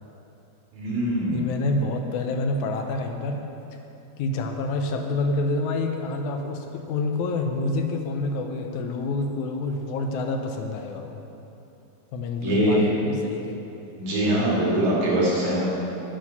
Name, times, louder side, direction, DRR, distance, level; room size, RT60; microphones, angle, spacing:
voice 1, 0.7-1.5 12.4-12.8 14.0-15.7, right 1 dB, 75° right, -7 dB, 3.9 m, -23 dB
voice 2, 1.3-3.5 4.2-11.2 12.1-13.7, left 2 dB, 85° left, 4 dB, 2.3 m, -28 dB
9.3 x 8.9 x 5.7 m, 2.9 s
omnidirectional pair, 3.3 m